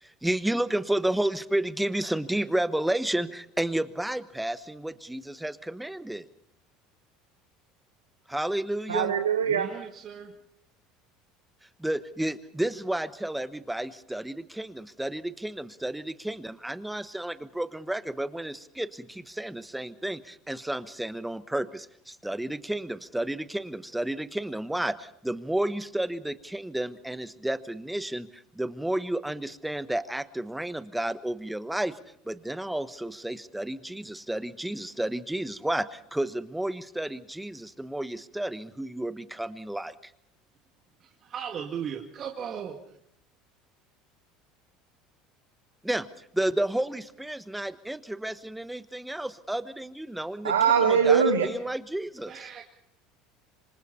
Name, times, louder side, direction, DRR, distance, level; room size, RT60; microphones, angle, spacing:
voice 1, 0.0-6.3 8.3-9.1 11.8-32.0 32.3-40.1 45.8-50.5 50.8-52.3, right 1 dB, 5° right, 13 dB, 1.2 m, -31 dB
voice 2, 8.9-9.7 50.4-51.5, right 7 dB, 85° right, 4 dB, 1.8 m, -22 dB
voice 3, 9.5-10.3 41.0-43.0 52.3-52.6, right 8 dB, 40° right, 2 dB, 2.2 m, -37 dB
27.0 x 25.0 x 4.2 m, 0.71 s
hypercardioid pair, 70°, 0 cm